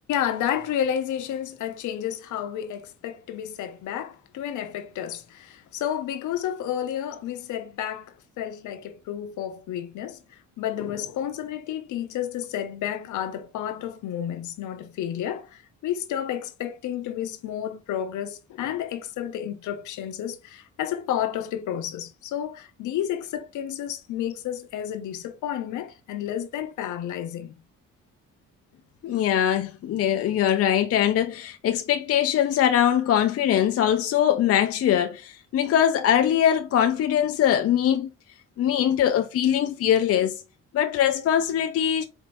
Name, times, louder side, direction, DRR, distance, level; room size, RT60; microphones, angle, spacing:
voice 1, 0.1-27.5, left 10 dB, 80° left, 0.8 m, -31 dB
voice 2, 29.0-38.1 38.6-40.4 40.7-42.0, left 10 dB, 50° left, 0.5 m, -22 dB
4.2 x 3.1 x 2.5 m
cardioid pair, 90°, 30 cm